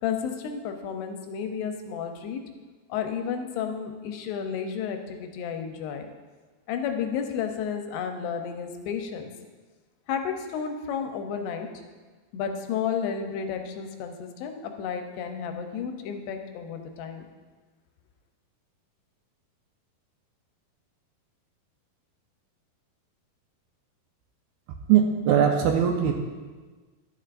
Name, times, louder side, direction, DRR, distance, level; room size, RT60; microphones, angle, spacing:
voice 1, 0.0-2.4 2.9-6.1 6.7-9.3 10.1-11.7 12.3-17.2, left 7 dB, 90° left, 5 dB, 2.9 m, -32 dB
voice 2, 24.9-26.1, right 8 dB, 80° right, 2 dB, 2.3 m, -20 dB
11.5 x 9.4 x 2.5 m, 1.4 s
omnidirectional pair, 4.7 m